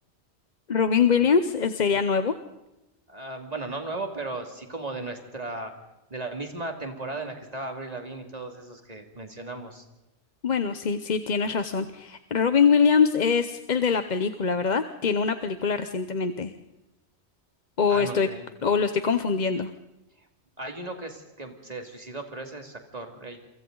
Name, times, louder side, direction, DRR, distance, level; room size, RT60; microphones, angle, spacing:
voice 1, 0.7-2.3 10.4-16.5 17.8-18.3 18.6-19.7, left 6 dB, 45° left, 9 dB, 0.9 m, -23 dB
voice 2, 3.1-5.7 6.1-9.8 17.9-18.5 20.2-20.3 20.6-23.5, right 2 dB, 35° right, 4 dB, 2.6 m, -36 dB
29.0 x 24.0 x 3.9 m, 0.97 s
omnidirectional pair, 1.2 m